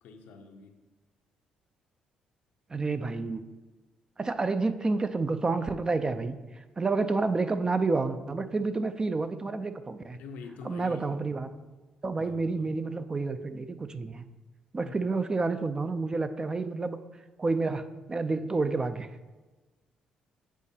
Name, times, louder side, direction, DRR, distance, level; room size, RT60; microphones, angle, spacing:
voice 1, 0.0-0.8 10.1-11.1 12.2-12.8 14.8-15.1, left 5 dB, 80° left, 5 dB, 0.7 m, -46 dB
voice 2, 2.7-3.4 4.2-6.4 6.8-10.2 10.6-11.5 12.0-14.2 14.7-17.0 17.4-19.1, right 3 dB, 30° right, 10 dB, 0.4 m, -29 dB
8.2 x 4.9 x 2.8 m, 1.2 s
supercardioid pair, 65°, 3 cm